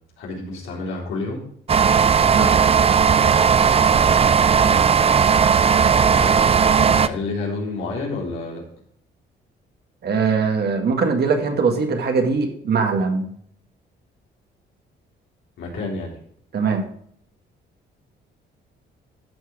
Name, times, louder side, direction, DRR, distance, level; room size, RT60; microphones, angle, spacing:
voice 1, 0.2-1.4 5.9-8.6 15.6-16.1, left 3 dB, 85° left, -2 dB, 3.7 m, -30 dB
sound 1, 1.7-7.1, right 7 dB, 30° right, 0.5 m, -16 dB
voice 2, 10.0-13.3 16.5-16.9, right 5 dB, 55° right, 4 dB, 1.9 m, -21 dB
13.0 x 4.7 x 4.9 m, 0.65 s
cardioid pair, 90°, 20 cm